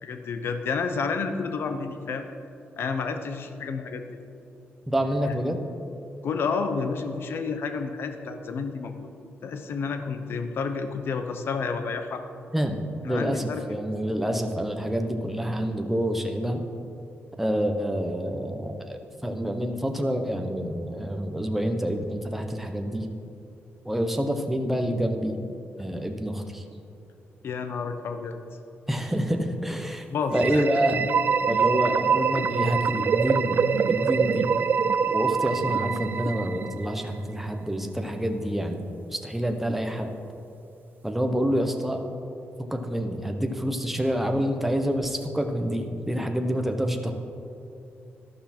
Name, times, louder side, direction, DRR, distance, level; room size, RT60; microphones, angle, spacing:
voice 1, 0.0-2.2 2.8-4.0 5.2-5.3 6.2-9.1 9.4-12.2 13.1-13.6 27.4-28.4 30.1-30.6, left 5 dB, 60° left, 7 dB, 0.8 m, -30 dB
voice 2, 4.9-5.6 12.5-12.8 13.0-16.6 17.4-23.1 23.8-25.4 25.8-26.6 28.9-30.1 30.3-31.0 31.5-33.6 33.9-34.5 35.1-38.8 39.1-40.1 41.0-42.0 42.7-47.1, equal, 5° right, 4 dB, 0.9 m, -27 dB
sound 1, 30.3-37.1, right 6 dB, 45° right, 0.3 m, -25 dB
13.0 x 12.0 x 4.4 m, 2.6 s
wide cardioid pair, 155°, 4 cm